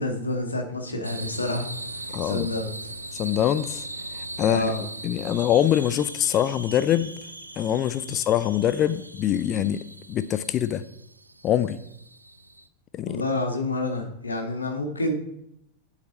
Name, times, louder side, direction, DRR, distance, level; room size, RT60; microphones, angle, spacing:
voice 1, 0.0-1.7 1.9-2.8 4.4-4.8 13.1-15.1, left 2 dB, 75° left, 3 dB, 2.0 m, -28 dB
sound 1, 1.0-12.7, right 2 dB, 85° right, 0.7 m, -39 dB
voice 2, 2.1-2.5 3.2-3.9 4.2-4.7 5.0-7.1 7.6-9.8 10.1-10.8 11.4-11.8 12.9-13.2, left 11 dB, 30° left, 14 dB, 0.5 m, -24 dB
8.8 x 8.1 x 4.3 m, 0.75 s
figure-of-eight pair, 90°, 0 cm